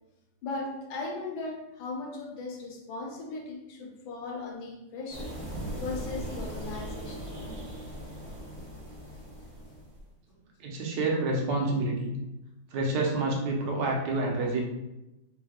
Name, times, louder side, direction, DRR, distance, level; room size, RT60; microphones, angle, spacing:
voice 1, 0.4-5.3 5.8-7.3 14.4-14.5, left 3 dB, 85° left, 1 dB, 1.5 m, -37 dB
sound 1, 5.1-10.0, right 1 dB, 20° right, 1.0 m, -39 dB
voice 2, 10.6-12.1 12.7-14.6, right 2 dB, 70° right, -1 dB, 1.3 m, -28 dB
3.7 x 3.1 x 2.4 m, 0.95 s
omnidirectional pair, 2.1 m